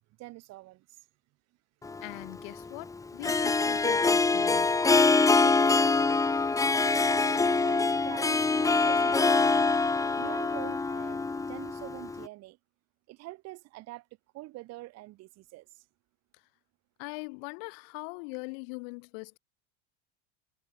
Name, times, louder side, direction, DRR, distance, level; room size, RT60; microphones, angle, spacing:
voice 1, 0.2-0.9 5.4-6.2 6.7-9.8 10.2-11.2 11.5-12.6 13.1-14.1 14.3-15.7, right 19 dB, 55° right, 2.5 m, -44 dB
Harp, 1.8-12.3, left 3 dB, 10° left, 0.8 m, -25 dB
voice 2, 2.0-4.7 16.3-16.4 17.0-19.4, left 38 dB, 65° left, 2.4 m, -41 dB
hypercardioid pair, 100°, 32 cm